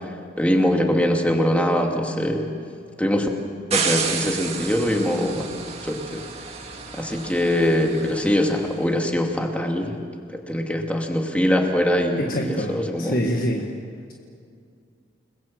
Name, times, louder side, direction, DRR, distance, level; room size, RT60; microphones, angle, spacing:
voice 1, 0.4-2.5 3.0-3.3 3.7-5.4 5.8-6.2 6.9-10.0 10.3-13.2, left 1 dB, 5° left, 2 dB, 2.5 m, -22 dB
sound 1, 3.7-8.8, right 5 dB, 35° right, 2.3 m, -31 dB
voice 2, 12.2-13.7, equal, 50° left, 1 dB, 1.7 m, -25 dB
29.5 x 21.0 x 7.6 m, 2.3 s
head